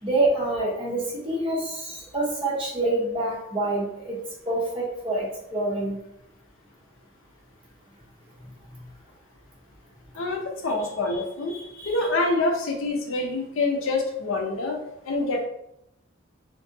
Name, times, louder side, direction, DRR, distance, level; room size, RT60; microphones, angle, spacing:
voice 1, 0.0-4.2 4.5-6.0 11.1-11.2 11.5-12.0, right 2 dB, 25° right, -6 dB, 0.9 m, -27 dB
voice 2, 10.1-11.5 11.9-15.4, left 2 dB, 80° left, 1 dB, 0.5 m, -26 dB
2.6 x 2.5 x 2.6 m, 0.80 s
head